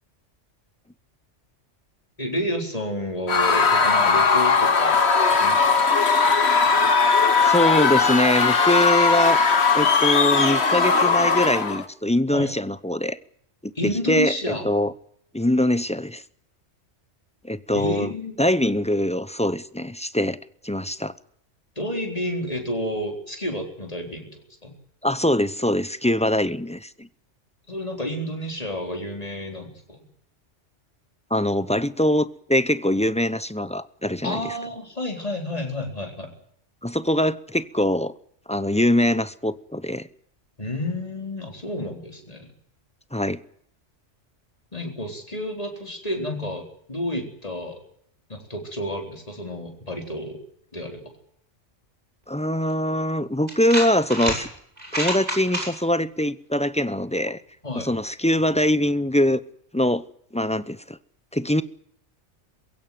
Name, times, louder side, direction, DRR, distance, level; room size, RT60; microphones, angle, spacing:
voice 1, 2.2-5.0 5.3-5.9 12.3-12.5 13.8-14.6 17.7-18.4 21.8-24.7 27.7-30.0 34.2-36.3 40.6-42.5 44.7-47.8 48.3-50.4 50.7-51.0 57.6-57.9, left 1 dB, 30° left, 4.3 m, -30 dB
Screaming / Cheering / Crowd, 3.3-11.8, left 4 dB, 60° left, 1.8 m, -19 dB
voice 2, 7.4-9.4 9.7-13.2 13.6-13.7 14.1-14.3 14.6-14.9 15.3-16.2 17.4-18.1 18.4-20.4 20.6-21.1 25.0-27.1 31.3-34.4 36.8-38.1 38.5-40.1 43.1-43.4 52.3-54.5 54.9-57.4 57.7-59.4 59.7-60.0 60.3-61.0 61.3-61.6, left 1 dB, 5° left, 0.6 m, -23 dB
sound 1, 52.7-52.8 53.5-54.4 54.8-55.7, equal, 35° right, 6.8 m, -27 dB
22.0 x 16.0 x 9.4 m
omnidirectional pair, 1.2 m